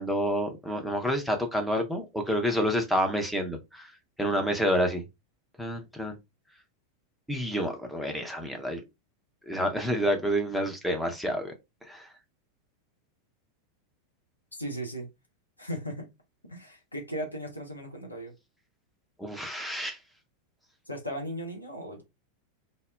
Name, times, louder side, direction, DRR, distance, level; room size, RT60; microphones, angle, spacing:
voice 1, 0.0-3.9 4.2-5.0 5.6-6.2 7.3-8.8 9.5-11.5 11.8-12.0 19.2-20.0, equal, ahead, 0.6 m, -28 dB
voice 2, 14.6-15.1 15.6-16.1 16.4-18.3 20.9-22.0, equal, 85° left, 0.7 m, -37 dB
2.1 x 2.0 x 3.3 m
figure-of-eight pair, 90°, 0 cm